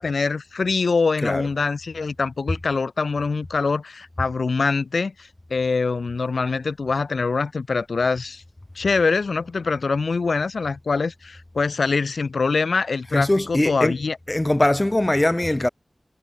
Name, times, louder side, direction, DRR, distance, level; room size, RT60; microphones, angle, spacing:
voice 1, 0.0-8.4 8.8-14.2, left 4 dB, 90° left, 6.9 m, -24 dB
voice 2, 13.1-14.0 14.3-15.7, left 1 dB, 25° left, 5.3 m, -21 dB
wide cardioid pair, 65°, 0 cm